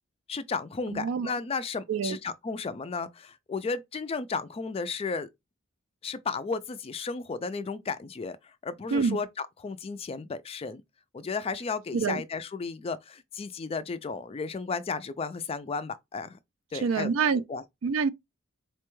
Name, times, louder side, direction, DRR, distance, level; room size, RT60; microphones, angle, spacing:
voice 1, 0.3-5.3 6.0-10.8 11.1-16.4 16.7-17.6, left 4 dB, 30° left, 0.3 m, -34 dB
voice 2, 0.9-1.3 1.9-2.2 8.9-9.2 11.9-12.2 16.8-17.4 17.8-18.1, right 5 dB, 75° right, 0.4 m, -26 dB
4.2 x 2.2 x 3.0 m
head